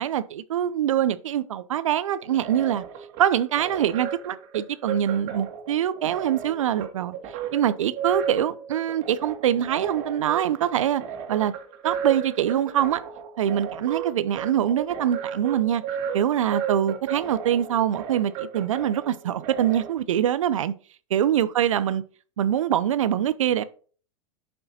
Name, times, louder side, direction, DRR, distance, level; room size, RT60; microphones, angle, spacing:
voice 1, 0.0-2.8 3.2-7.2 7.5-11.0 11.3-11.5 11.8-13.0 13.4-15.8 16.1-20.7 21.1-22.0 22.4-23.6, right 10 dB, 75° right, 0.7 m, -24 dB
sound 1, 2.2-19.9, right 7 dB, 55° right, 2.2 m, -35 dB
8.1 x 5.4 x 4.2 m
hypercardioid pair, 95°, 17 cm